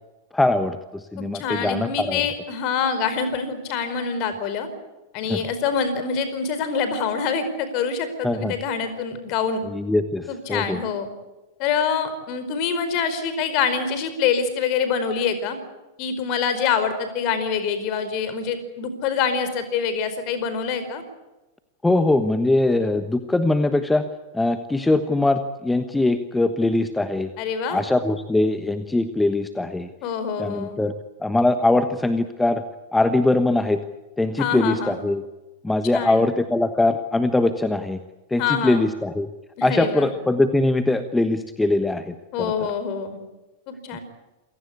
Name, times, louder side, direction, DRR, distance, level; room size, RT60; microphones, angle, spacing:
voice 1, 0.3-2.2 5.3-5.4 8.2-8.5 9.7-10.8 21.8-24.1 24.3-27.3 27.7-29.9 30.4-30.9 31.2-32.6 32.9-33.8 34.2-35.2 35.6-38.0 38.3-39.3 39.6-42.5, left 2 dB, 5° left, 10 dB, 1.2 m, -22 dB
voice 2, 1.2-4.7 5.1-9.6 10.3-11.1 11.6-15.6 16.0-21.0 27.4-27.8 30.0-30.8 34.4-35.0 35.9-36.3 38.4-38.9 39.6-40.1 42.3-43.2 43.7-44.0, left 6 dB, 45° left, 11 dB, 4.7 m, -25 dB
28.0 x 17.5 x 8.4 m, 1.1 s
figure-of-eight pair, 90°, 0 cm